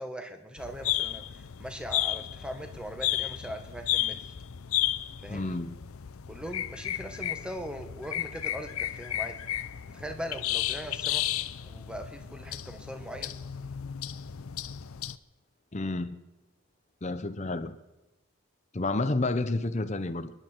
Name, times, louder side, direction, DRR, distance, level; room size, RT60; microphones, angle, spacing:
voice 1, 0.0-4.3 5.2-5.6 6.3-9.4 9.9-11.2 11.6-13.4, equal, 5° right, 1.4 m, -40 dB
sound 1, 0.6-15.2, left 13 dB, 80° left, 0.6 m, -33 dB
voice 2, 5.3-5.8 15.7-16.2 17.0-17.8 18.7-20.3, left 2 dB, 30° left, 0.7 m, -30 dB
28.5 x 11.0 x 4.5 m
head